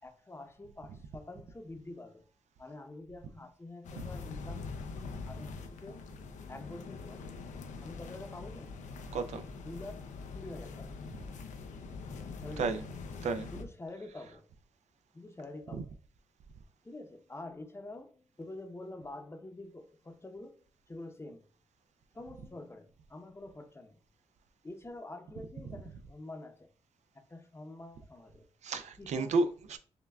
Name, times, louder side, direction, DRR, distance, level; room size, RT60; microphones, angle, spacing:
voice 1, 0.0-2.2 2.6-4.7 5.2-6.0 6.5-7.2 7.8-8.8 9.6-11.0 12.4-12.8 13.5-14.4 15.1-15.9 16.8-21.5 22.1-24.0 24.6-26.7 27.3-28.5 29.0-29.3, left 2 dB, 20° left, 0.7 m, -47 dB
sound 1, 3.8-13.6, left 4 dB, 80° left, 0.5 m, -43 dB
voice 2, 9.1-9.4 12.6-12.8 13.2-13.5 15.7-15.8 28.6-29.8, right 3 dB, 65° right, 0.4 m, -32 dB
5.4 x 2.3 x 2.3 m
cardioid pair, 70°, 13 cm